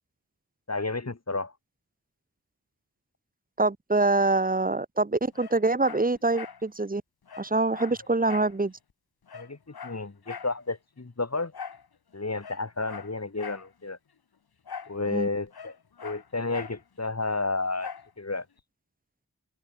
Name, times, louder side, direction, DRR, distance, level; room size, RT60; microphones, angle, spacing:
voice 1, 0.7-1.5 9.3-11.5 12.1-14.0 14.9-15.8 16.0-17.9 18.2-18.5, left 3 dB, 45° left, 2.0 m, -31 dB
voice 2, 3.6-7.0 7.4-8.7 15.1-15.3, right 3 dB, 25° right, 0.7 m, -25 dB
Dog, 5.3-6.6 6.9-7.0 7.3-8.6 8.9-9.0 9.3-10.6 11.5-11.9 12.3-13.7 14.7-15.0 15.3-16.8 17.8-18.1 18.6-18.7, left 6 dB, 80° left, 1.0 m, -42 dB
open air
wide cardioid pair, 45°, 37 cm